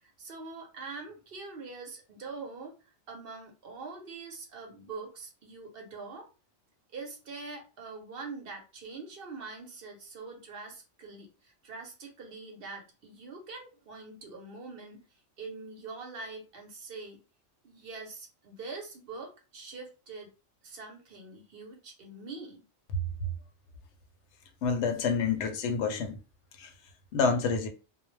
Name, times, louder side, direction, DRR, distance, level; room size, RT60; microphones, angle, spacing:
voice 1, 0.0-6.3 6.9-15.0 15.4-17.2 17.6-20.3 20.6-22.6, right 3 dB, 60° right, 0.8 m, -44 dB
voice 2, 24.6-26.2 26.6-26.7 27.1-27.7, left 5 dB, 70° left, 0.8 m, -28 dB
2.2 x 2.0 x 3.0 m
omnidirectional pair, 1.2 m